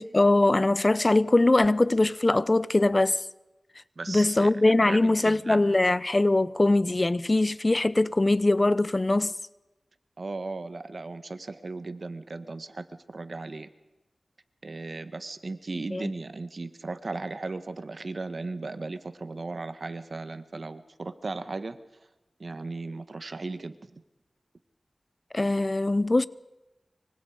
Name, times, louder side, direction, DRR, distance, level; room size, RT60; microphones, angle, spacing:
voice 1, 0.0-3.2 4.1-9.3 15.9-16.1 25.3-26.3, left 2 dB, 35° left, 0.7 m, -22 dB
voice 2, 4.0-4.5 4.8-5.6 10.2-13.7 14.6-21.8 22.4-24.0, right 3 dB, 60° right, 1.5 m, -36 dB
25.0 x 24.5 x 5.1 m
wide cardioid pair, 60°, 0 cm